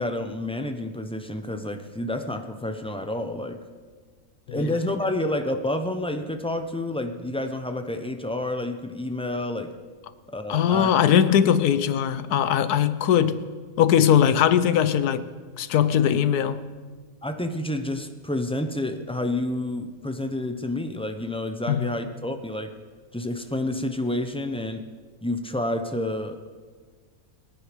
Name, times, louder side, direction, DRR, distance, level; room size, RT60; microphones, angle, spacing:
voice 1, 0.0-3.6 4.5-9.7 10.3-10.9 17.2-22.7 23.1-24.8 25.2-26.6, left 1 dB, 5° left, 0.5 m, -29 dB
voice 2, 10.5-13.5 13.8-15.3 15.6-16.6 21.7-21.9, left 9 dB, 85° left, 1.3 m, -20 dB
22.0 x 10.0 x 5.2 m
omnidirectional pair, 1.6 m